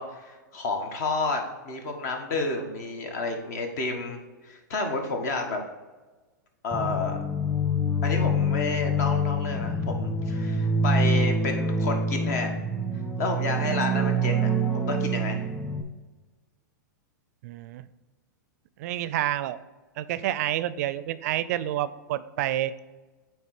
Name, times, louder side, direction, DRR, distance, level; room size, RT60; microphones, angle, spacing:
voice 1, 0.0-5.6 6.6-7.2 8.0-12.6 13.2-15.5, left 3 dB, 60° left, 4 dB, 1.4 m, -30 dB
sound 1, 6.7-15.8, equal, 10° left, 1.3 m, -26 dB
voice 2, 17.4-17.8 18.8-19.6 20.0-22.7, right 13 dB, 55° right, 15 dB, 0.4 m, -28 dB
8.9 x 3.2 x 4.8 m, 1.2 s
hypercardioid pair, 115°, 10 cm